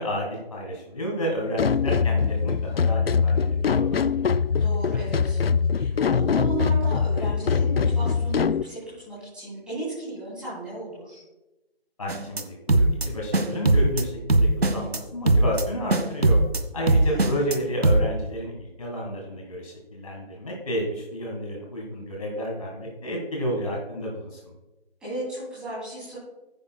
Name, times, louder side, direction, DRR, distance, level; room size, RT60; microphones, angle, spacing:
voice 1, 0.0-4.0 12.0-16.4 16.7-24.5, equal, 35° left, -1 dB, 1.7 m, -31 dB
sound 1, 1.6-8.6, left 6 dB, 65° left, 0.4 m, -23 dB
voice 2, 4.6-5.4 5.7-11.2 16.7-17.2 25.0-26.2, right 2 dB, 5° right, -11 dB, 2.8 m, -35 dB
sound 2, 12.1-12.4 12.7-13.1 13.3-14.0 14.3-15.0 15.3-15.6 15.9-16.6 16.9-17.6 17.8-18.0, right 2 dB, 70° right, 1.5 m, -19 dB
15.0 x 9.4 x 2.3 m, 1.1 s
figure-of-eight pair, 165°, 32 cm